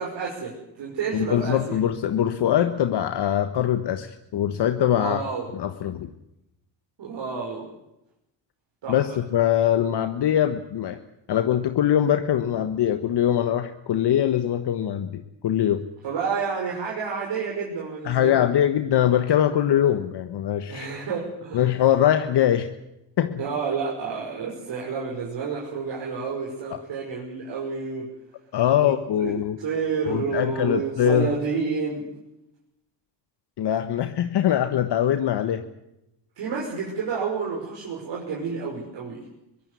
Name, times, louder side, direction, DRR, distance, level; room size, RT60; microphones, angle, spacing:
voice 1, 0.0-1.8 4.9-5.5 7.0-7.7 8.8-9.2 16.0-18.4 20.7-21.6 23.4-28.1 28.8-32.1 36.4-39.3, right 5 dB, 65° right, -2 dB, 6.2 m, -30 dB
voice 2, 1.1-5.2 5.5-6.1 8.9-11.0 11.3-15.9 18.0-20.9 21.5-22.7 23.2-23.4 26.7-26.8 28.5-29.6 30.1-31.3 33.6-35.6, left 10 dB, 60° left, 8 dB, 1.4 m, -22 dB
22.5 x 17.0 x 9.8 m, 0.87 s
supercardioid pair, 65°, 46 cm